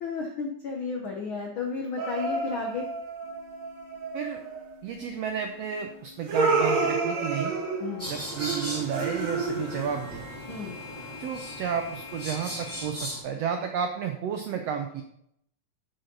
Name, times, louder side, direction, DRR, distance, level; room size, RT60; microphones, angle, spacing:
voice 1, 0.0-2.9 7.8-8.1 10.5-10.7, left 4 dB, 75° left, 1 dB, 1.1 m, -33 dB
sound 1, 2.0-4.7 6.3-10.1, right 3 dB, 60° right, 2.4 m, -29 dB
sound 2, 3.2-12.9, left 5 dB, 15° right, 1.5 m, -47 dB
voice 2, 4.8-7.5 8.1-10.2 11.2-15.0, right 7 dB, 85° right, 5 dB, 1.4 m, -32 dB
sound 3, 8.0-13.2, equal, 5° left, 2.2 m, -38 dB
8.2 x 8.0 x 3.9 m, 0.72 s
omnidirectional pair, 3.8 m